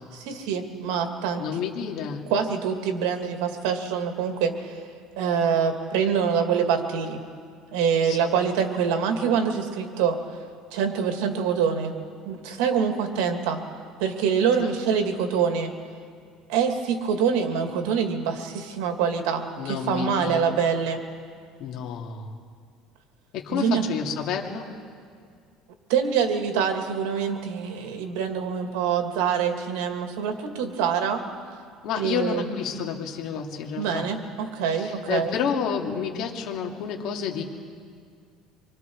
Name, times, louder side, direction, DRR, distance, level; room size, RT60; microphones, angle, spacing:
voice 1, 0.1-1.4 2.3-4.8 5.2-7.2 7.7-10.2 10.7-11.9 12.3-13.6 14.0-15.7 16.5-21.0 23.5-23.8 25.9-31.2 32.0-32.4 33.8-35.3, right 7 dB, 90° right, 4 dB, 2.3 m, -25 dB
voice 2, 1.4-2.2 8.0-8.2 14.6-14.7 19.6-20.4 21.6-22.3 23.3-24.6 31.8-34.0 34.7-37.4, left 7 dB, 60° left, 1 dB, 2.5 m, -30 dB
26.0 x 24.0 x 4.7 m, 2.1 s
cardioid pair, 135°, 0 cm